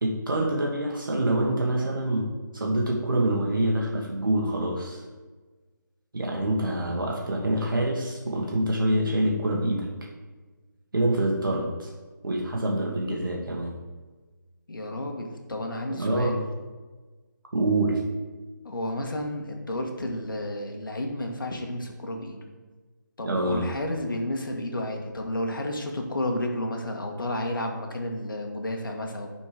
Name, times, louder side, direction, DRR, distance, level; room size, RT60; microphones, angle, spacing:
voice 1, 0.0-2.2 2.5-5.0 6.1-9.9 10.9-11.9 12.2-13.7 16.0-16.4 17.5-18.0 23.2-23.6, right 1 dB, 85° right, -2 dB, 1.6 m, -26 dB
voice 2, 14.7-16.4 18.6-22.4 23.2-29.3, left 1 dB, 85° left, 2 dB, 1.7 m, -31 dB
10.0 x 4.5 x 4.9 m, 1.3 s
hypercardioid pair, 180°, 11 cm